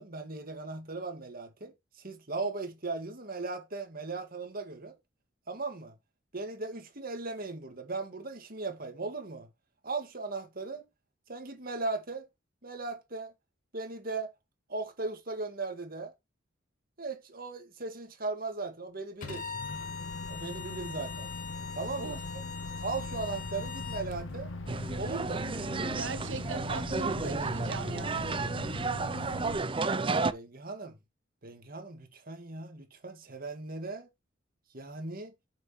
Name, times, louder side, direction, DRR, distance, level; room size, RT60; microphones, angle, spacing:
voice 1, 0.0-5.0 5.5-6.0 6.3-9.5 9.8-10.8 11.3-12.3 12.6-13.3 13.7-14.3 14.7-16.1 17.0-19.5 20.3-21.3 21.8-22.2 22.8-24.5 25.0-25.5 30.1-31.0 31.4-34.1 34.7-35.3, right 3 dB, 50° right, 2.1 m, -38 dB
Microwave oven, 19.2-29.6, left 2 dB, 85° left, 1.2 m, -41 dB
Bowed string instrument, 19.2-24.1, left 6 dB, 45° left, 2.6 m, -42 dB
sound 1, 24.7-30.3, right 3 dB, 25° right, 0.5 m, -32 dB
voice 2, 25.9-28.3, right 4 dB, 75° right, 1.1 m, -41 dB
9.3 x 6.6 x 3.2 m
head